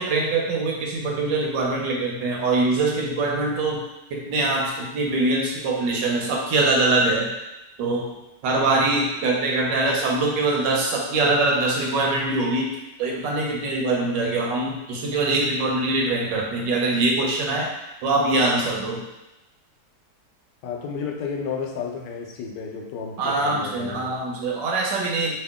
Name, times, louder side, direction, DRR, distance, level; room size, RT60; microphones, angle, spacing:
voice 1, 0.0-3.8 4.1-7.3 7.8-8.1 8.4-12.7 13.0-17.7 18.0-19.1 23.2-25.3, right 2 dB, 85° right, -1 dB, 1.4 m, -23 dB
voice 2, 20.6-24.2, left 5 dB, 80° left, 1 dB, 1.2 m, -32 dB
2.9 x 2.7 x 3.5 m, 0.97 s
omnidirectional pair, 1.9 m